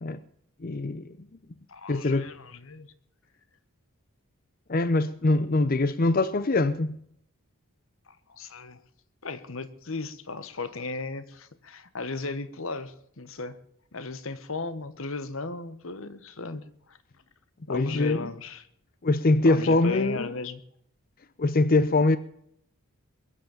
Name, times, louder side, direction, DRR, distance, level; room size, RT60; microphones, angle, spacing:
voice 1, 0.6-1.1 1.9-2.3 4.7-6.9 17.7-18.3 19.0-20.3 21.4-22.2, left 2 dB, 40° left, 0.6 m, -23 dB
voice 2, 1.7-2.9 8.1-8.8 9.2-13.6 13.9-17.0 17.7-18.7 19.4-20.6, left 3 dB, 60° left, 1.2 m, -36 dB
21.5 x 8.0 x 7.1 m
head